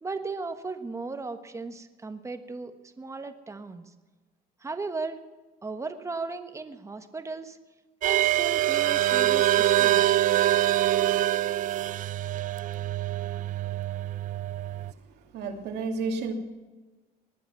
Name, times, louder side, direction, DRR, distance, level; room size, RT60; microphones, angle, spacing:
voice 1, 0.0-3.8 4.6-5.2 5.6-7.6 8.0-10.0, right 3 dB, 15° right, 7 dB, 1.3 m, -36 dB
sound 1, 8.0-14.9, right 14 dB, 50° right, 0.4 m, -24 dB
voice 2, 14.8-16.3, right 4 dB, 80° right, 3 dB, 2.5 m, -32 dB
19.0 x 10.0 x 6.0 m, 1.2 s
cardioid pair, 110°, 17 cm